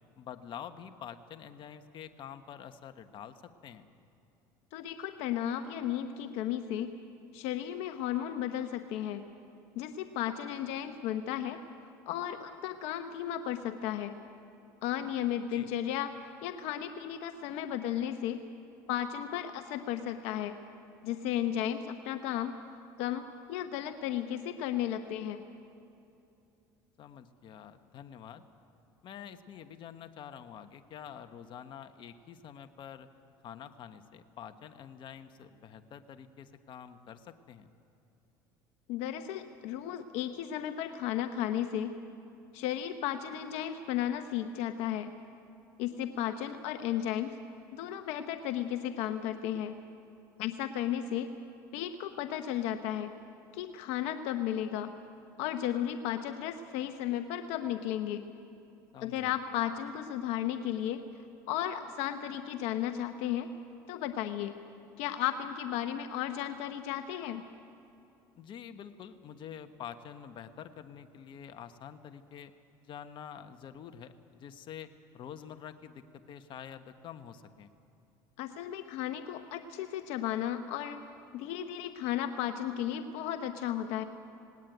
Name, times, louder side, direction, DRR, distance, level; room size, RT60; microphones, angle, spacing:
voice 1, 0.2-3.8 15.5-15.7 27.0-28.4 29.0-33.1 33.4-37.7 58.9-59.4 68.4-72.5 72.8-77.7, left 8 dB, 50° left, 8 dB, 1.3 m, -47 dB
voice 2, 4.7-7.0 7.3-9.2 9.7-11.6 12.1-14.1 14.8-18.4 18.9-20.6 21.0-22.6 23.0-25.4 38.9-41.9 42.5-45.1 45.8-47.4 47.7-49.8 50.4-51.3 51.7-53.1 53.5-54.9 55.4-58.2 59.0-61.0 61.5-63.5 63.9-64.5 65.0-67.4 78.4-81.1 81.3-84.0, left 11 dB, 75° left, 8 dB, 0.9 m, -34 dB
19.0 x 17.5 x 9.4 m, 2.7 s
supercardioid pair, 90°, 10 cm